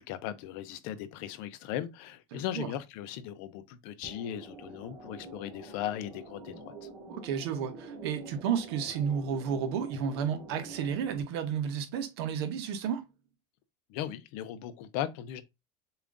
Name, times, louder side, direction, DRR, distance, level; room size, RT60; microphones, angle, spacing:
voice 1, 0.0-6.9 13.9-15.4, left 11 dB, 60° left, 0.6 m, -38 dB
voice 2, 2.3-2.7 7.1-13.1, right 7 dB, 85° right, 0.9 m, -32 dB
sound 1, 4.0-11.2, right 2 dB, 35° right, 2.2 m, -47 dB
6.9 x 2.5 x 2.5 m
cardioid pair, 170°, 13 cm